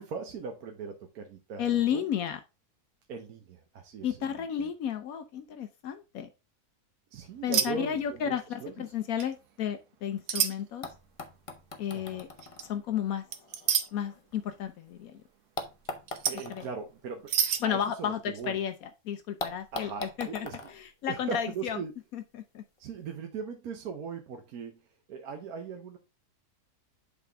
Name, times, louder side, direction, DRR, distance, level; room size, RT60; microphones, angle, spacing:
voice 1, 0.0-2.0 3.1-4.1 4.4-4.7 7.1-8.9 11.9-12.2 16.3-18.6 19.7-20.6 21.1-21.9 22.8-24.8 25.1-26.0, right 5 dB, 70° right, 3 dB, 1.3 m, -39 dB
voice 2, 1.6-2.4 4.0-6.3 7.4-10.9 11.8-12.3 12.6-13.3 13.9-15.2 16.5-16.7 17.6-21.8 22.1-22.6, left 9 dB, 70° left, 9 dB, 1.0 m, -32 dB
sound 1, 7.5-7.7 8.0-8.3 9.2-9.3 10.3-10.5 12.4-12.6 13.3-13.9 16.1-16.5 17.3-17.6, right 9 dB, 90° right, 1.2 m, -27 dB
sound 2, 10.8-14.9 15.6-18.5 18.8-18.9 19.4-21.8 22.8-22.9, left 2 dB, 40° left, 0.4 m, -43 dB
8.4 x 3.6 x 3.3 m, 0.27 s
omnidirectional pair, 1.6 m